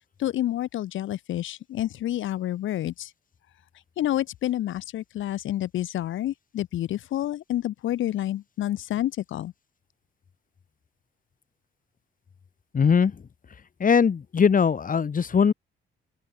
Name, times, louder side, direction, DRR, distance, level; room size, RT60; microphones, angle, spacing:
voice 1, 0.2-3.1 4.0-9.5, left 13 dB, 80° left, 2.5 m, -29 dB
voice 2, 12.7-13.1 13.8-15.5, left 6 dB, 45° left, 4.6 m, -20 dB
open air
cardioid pair, 90°, 20 cm